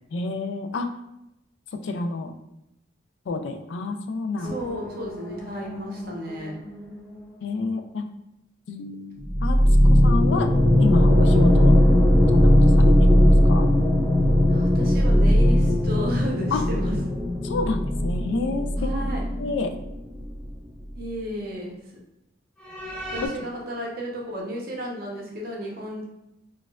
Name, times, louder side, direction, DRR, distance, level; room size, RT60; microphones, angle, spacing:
voice 1, 0.1-0.9 1.8-2.3 3.3-4.5 7.4-8.1 8.7-9.6 9.8-10.5 10.8-11.8 12.3-13.7 16.5-16.6 17.4-18.9 19.4-19.7, left 3 dB, 65° left, 6 dB, 0.3 m, -29 dB
sound 1, 4.4-7.2 9.2-20.6 20.9-21.0 22.7-23.3, left 1 dB, 5° left, 0.5 m, -19 dB
voice 2, 4.4-6.5 14.5-17.0 18.8-19.3 20.9-21.8 23.1-26.0, equal, 50° right, -2 dB, 0.7 m, -33 dB
4.1 x 2.3 x 2.3 m, 0.88 s
head